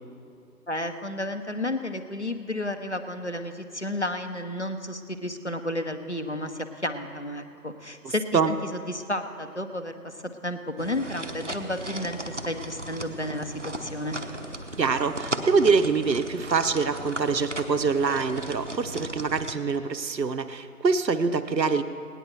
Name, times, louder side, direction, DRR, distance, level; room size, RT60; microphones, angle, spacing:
voice 1, 0.7-14.2, left 1 dB, 45° left, 7 dB, 0.7 m, -32 dB
voice 2, 8.0-8.5 14.8-21.8, right 5 dB, 80° right, 10 dB, 0.9 m, -25 dB
sound 1, 10.8-19.6, right 1 dB, 45° right, 0.7 m, -36 dB
17.5 x 10.0 x 4.4 m, 2.5 s
figure-of-eight pair, 170°, 50 cm